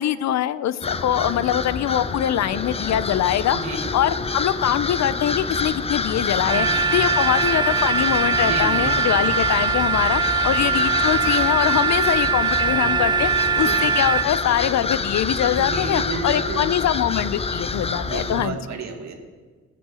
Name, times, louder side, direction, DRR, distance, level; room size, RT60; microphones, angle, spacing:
voice 1, 0.0-3.6 3.9-18.6, left 11 dB, 65° left, 16 dB, 0.6 m, -23 dB
sound 1, 0.8-18.5, left 4 dB, 20° left, 0.6 m, -27 dB
voice 2, 3.5-3.8 6.5-6.8 8.4-8.9 13.5-13.8 15.5-16.7 18.0-19.1, right 4 dB, 65° right, 4 dB, 2.0 m, -31 dB
sound 2, 6.5-14.2, right 5 dB, 15° right, 0.7 m, -22 dB
17.0 x 6.1 x 6.9 m, 1.5 s
cardioid pair, 90°, 30 cm